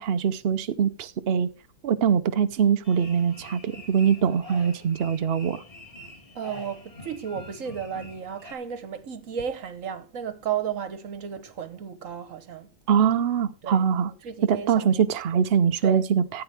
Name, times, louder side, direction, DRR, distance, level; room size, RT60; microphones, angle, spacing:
voice 1, 0.0-1.5 1.8-5.6 12.9-14.1 14.5-16.4, right 7 dB, 75° right, 0.5 m, -23 dB
sound 1, 2.8-8.5, left 1 dB, 20° left, 2.2 m, -45 dB
voice 2, 6.3-12.7 13.6-15.0 15.3-15.4 15.8-16.0, right 8 dB, 50° right, 1.3 m, -34 dB
14.5 x 9.1 x 3.4 m
omnidirectional pair, 2.0 m